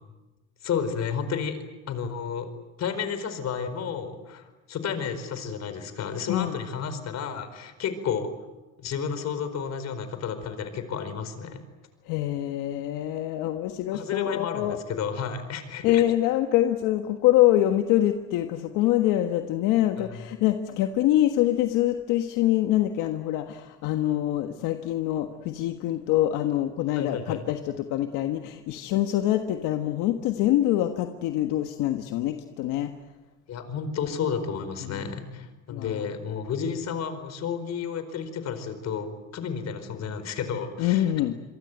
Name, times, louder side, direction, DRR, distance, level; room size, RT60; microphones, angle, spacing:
voice 1, 0.6-1.6 1.9-2.5 2.8-8.3 8.8-11.6 13.9-16.0 20.0-20.2 26.9-27.4 33.5-41.1, left 7 dB, 60° left, 10 dB, 4.6 m, -32 dB
voice 2, 12.1-14.8 15.8-32.9 34.8-35.2 35.7-36.1 40.8-41.3, left 13 dB, 85° left, 6 dB, 1.5 m, -25 dB
27.0 x 23.5 x 9.1 m, 1.1 s
cardioid pair, 95°, 30 cm